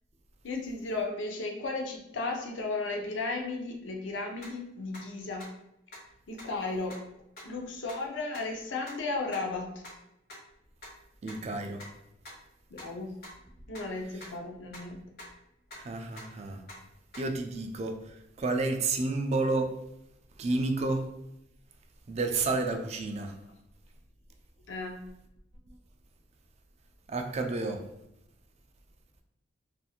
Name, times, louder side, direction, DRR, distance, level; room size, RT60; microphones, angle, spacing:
voice 1, 0.4-5.4 6.3-7.0 7.4-9.7 12.7-13.1 13.7-15.0 24.7-25.0, left 3 dB, 70° left, 1 dB, 0.6 m, -34 dB
sound 1, 4.4-4.5 4.9-5.0 5.4-5.5 5.9-6.0 6.4-6.5 6.9-7.0 7.4-7.5 7.9-8.0 8.3-8.4 8.9-9.0 9.3-9.4 9.8-9.9 10.3-10.4 10.8-10.9 11.3-11.4 11.8-11.9 12.3-12.4 12.8-12.9 13.2-13.3 13.7-13.8 14.2-14.3 14.7-14.8 15.2-15.3 15.7-15.8 16.2-16.3 16.7-16.8 17.1-17.2, left 1 dB, 55° left, 1.1 m, -45 dB
voice 2, 11.2-11.8 14.1-14.2 15.7-16.6 17.2-19.8 20.4-21.1 22.1-23.4 27.1-27.9, right 3 dB, 35° right, 4 dB, 0.3 m, -31 dB
2.8 x 2.5 x 2.4 m, 0.83 s
head